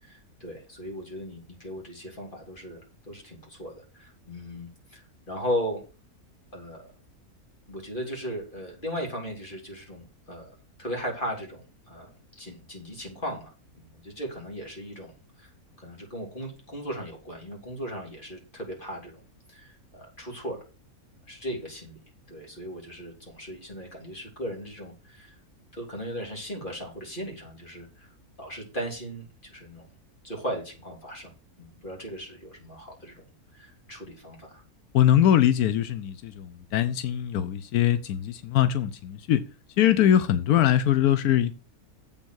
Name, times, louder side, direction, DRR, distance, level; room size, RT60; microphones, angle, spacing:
voice 1, 0.0-5.8 6.5-6.9 7.7-10.5 10.8-15.5 15.8-19.2 19.5-20.6 21.3-22.0 22.3-25.4 25.7-28.1 28.4-29.9 30.2-33.2 33.5-34.6, equal, 35° left, 3.7 m, -37 dB
voice 2, 34.9-39.4 39.8-41.5, left 11 dB, 90° left, 1.2 m, -22 dB
7.8 x 7.1 x 6.3 m
omnidirectional pair, 1.5 m